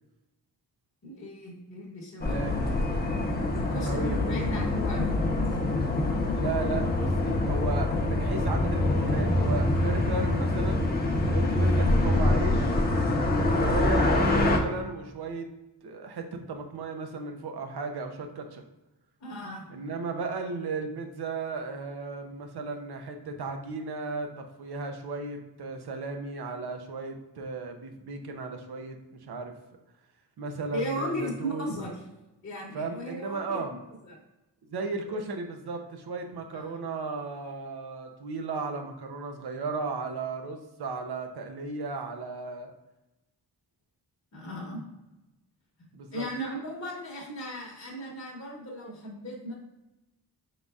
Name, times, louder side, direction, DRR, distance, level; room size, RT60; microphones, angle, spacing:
voice 1, 1.0-2.4 3.5-5.4 11.7-11.8 19.2-19.7 30.7-32.0 32.4-33.6 34.0-34.1 35.1-35.2 36.5-36.8 44.3-44.8 46.1-49.5, equal, 40° left, -4 dB, 1.0 m, -37 dB
sound 1, 2.2-14.6, left 2 dB, 25° left, 0.7 m, -25 dB
voice 2, 2.2-2.7 3.8-4.2 6.3-10.8 11.3-12.8 13.3-15.5 15.8-18.6 19.7-29.5 30.4-31.7 32.7-33.7 34.6-42.7 45.9-46.2, right 3 dB, 65° right, 5 dB, 0.7 m, -35 dB
5.2 x 3.8 x 2.3 m, 1.0 s
wide cardioid pair, 140°, 41 cm